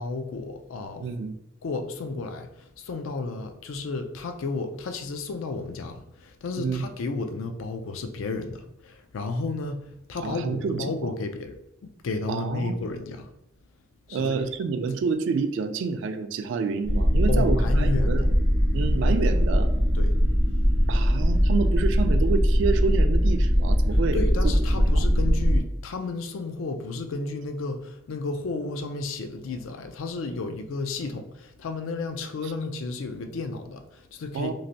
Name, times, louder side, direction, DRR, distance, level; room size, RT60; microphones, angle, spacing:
voice 1, 0.0-1.1 1.6-11.6 11.8-13.3 14.1-14.4 17.3-18.3 19.0-19.2 19.9-20.1 24.1-34.5, left 3 dB, 80° left, 0.4 m, -32 dB
voice 2, 1.0-1.4 6.6-6.9 10.2-11.1 12.3-12.8 14.1-18.2 18.7-19.7 20.9-24.8 34.3-34.5, right 5 dB, 65° right, 0.3 m, -28 dB
sound 1, 16.8-25.6, equal, 30° left, 0.5 m, -21 dB
3.1 x 2.5 x 2.6 m
head